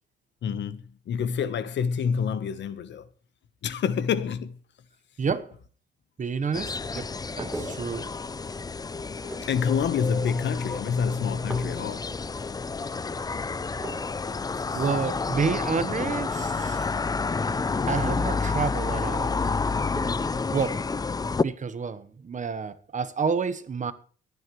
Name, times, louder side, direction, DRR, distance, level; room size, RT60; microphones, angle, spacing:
voice 1, 0.4-3.1 3.6-4.6 9.4-12.1 12.8-13.0, left 6 dB, 65° left, 1.1 m, -27 dB
voice 2, 5.2-5.5 6.2-8.1 14.7-16.8 17.9-19.4 20.5-20.9 21.4-23.9, right 5 dB, 40° right, 1.2 m, -29 dB
sound 1, 6.5-21.4, left 4 dB, 20° left, 0.5 m, -29 dB
sound 2, 7.3-8.2 8.5-8.9 9.2-9.8 11.3-12.0 13.2-13.3 13.5-15.1 16.0-17.1 18.4-19.1 19.9-20.4, right 1 dB, 5° right, 3.5 m, -41 dB
22.5 x 9.5 x 3.2 m
cardioid pair, 90°, 20 cm